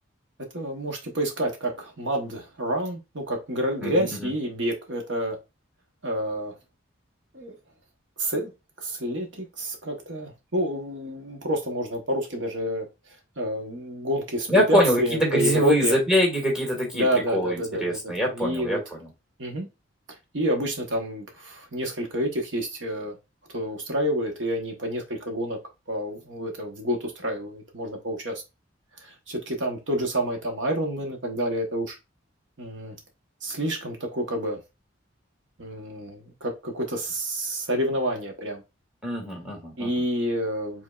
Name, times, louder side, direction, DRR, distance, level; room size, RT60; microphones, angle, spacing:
voice 1, 0.5-5.4 6.0-6.5 7.3-7.5 8.2-8.5 8.8-12.9 13.4-16.0 16.9-18.8 19.4-19.7 20.3-23.1 23.5-25.6 25.9-28.4 29.0-32.0 32.6-33.0 33.4-34.6 35.6-38.6 39.8-40.8, equal, 65° right, 1.1 m, -28 dB
voice 2, 3.8-4.3 14.5-17.1 17.3-19.1 39.0-40.0, equal, 5° right, 1.7 m, -24 dB
5.2 x 3.6 x 2.3 m
head